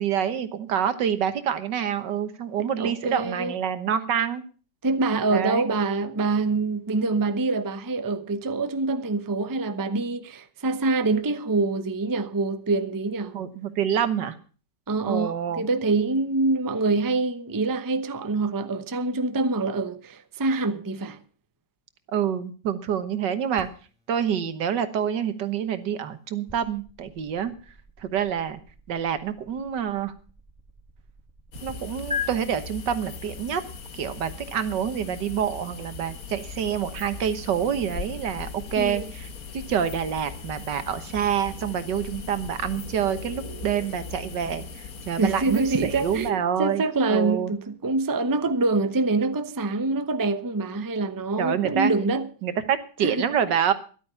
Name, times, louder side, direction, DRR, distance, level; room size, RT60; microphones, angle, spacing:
voice 1, 0.0-4.4 5.3-5.6 13.3-14.4 15.1-15.7 22.1-23.7 24.1-27.5 28.0-28.6 28.9-30.1 31.6-33.6 33.9-39.0 39.5-44.6 45.1-46.8 47.1-47.5 51.4-51.9 52.4-53.7, right 8 dB, 85° right, 1.9 m, -27 dB
voice 2, 2.6-3.6 4.8-13.4 14.9-21.2 38.8-39.1 45.2-52.3 53.0-53.3, right 3 dB, 20° right, 0.6 m, -25 dB
sound 1, 23.6-31.7 32.1-32.3, left 6 dB, 5° right, 2.5 m, -41 dB
sound 2, 31.5-46.3, left 5 dB, 60° left, 1.7 m, -39 dB
13.5 x 11.5 x 5.6 m
omnidirectional pair, 1.8 m